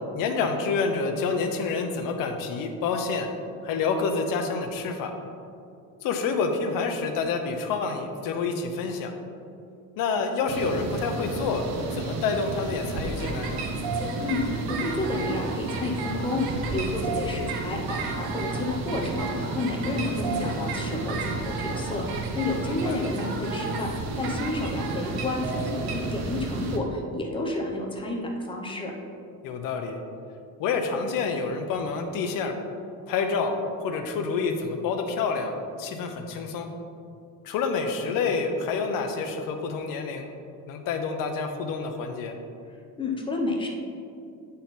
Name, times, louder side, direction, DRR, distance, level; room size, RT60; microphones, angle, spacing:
voice 1, 0.1-3.3 3.6-5.1 6.0-9.1 10.0-11.7 11.9-13.6 22.7-23.1 29.4-30.0 30.6-32.5 33.1-33.5 33.8-36.7 37.4-40.3 40.7-42.3, left 4 dB, 65° left, 5 dB, 0.8 m, -28 dB
sound 1, 10.5-26.8, right 3 dB, 50° right, 0.7 m, -33 dB
sound 2, 13.2-25.9, right 4 dB, 90° right, 1.0 m, -35 dB
voice 2, 14.2-28.9 43.0-43.7, left 2 dB, 15° left, 0 dB, 0.6 m, -30 dB
8.4 x 4.1 x 4.0 m, 2.5 s
cardioid pair, 165°, 36 cm